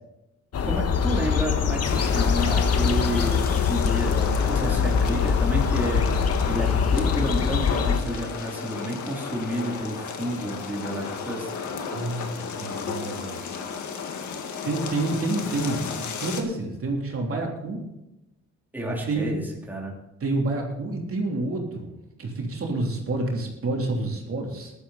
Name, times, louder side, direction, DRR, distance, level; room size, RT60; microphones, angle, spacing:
sound 1, 0.5-8.0, left 6 dB, 55° left, 1.2 m, -23 dB
voice 1, 0.6-6.0 6.5-11.5 18.7-19.4 19.7-20.0, right 1 dB, 5° right, -2 dB, 3.1 m, -30 dB
sound 2, 1.9-16.4, left 6 dB, 75° left, 1.9 m, -33 dB
voice 2, 11.9-13.4 14.6-17.8 18.9-19.4 20.2-21.9 22.2-24.7, right 2 dB, 50° right, -1 dB, 3.3 m, -28 dB
15.0 x 12.0 x 4.2 m, 0.89 s
cardioid pair, 105°, 30 cm